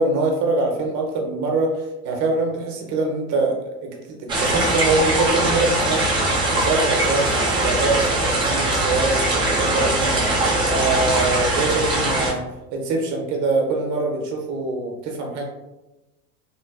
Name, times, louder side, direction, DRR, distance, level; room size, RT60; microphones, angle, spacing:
voice 1, 0.0-6.0 6.5-7.3 7.5-10.3 10.7-12.4 12.7-15.4, right 3 dB, 40° right, 1 dB, 0.8 m, -24 dB
sound 1, 4.3-12.3, right 2 dB, 10° right, 0.4 m, -21 dB
3.0 x 2.5 x 2.3 m, 1.0 s
hypercardioid pair, 95°, 47 cm